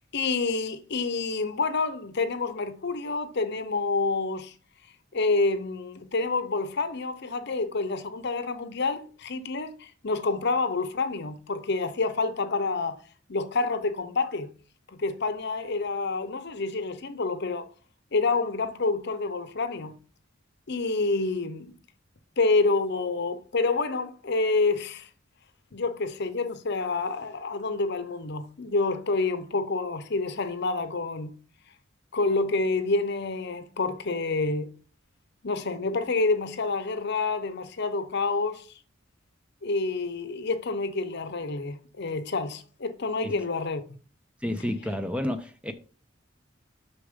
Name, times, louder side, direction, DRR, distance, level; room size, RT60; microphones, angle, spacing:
voice 1, 0.1-4.5 5.1-13.0 13.3-14.5 15.0-17.6 18.1-19.9 20.7-21.7 22.4-25.1 25.7-31.3 32.1-34.7 35.4-38.7 39.6-43.8, left 3 dB, 55° left, 0.8 m, -28 dB
voice 2, 44.4-45.7, left 1 dB, 5° right, 0.6 m, -30 dB
6.8 x 6.0 x 3.7 m
head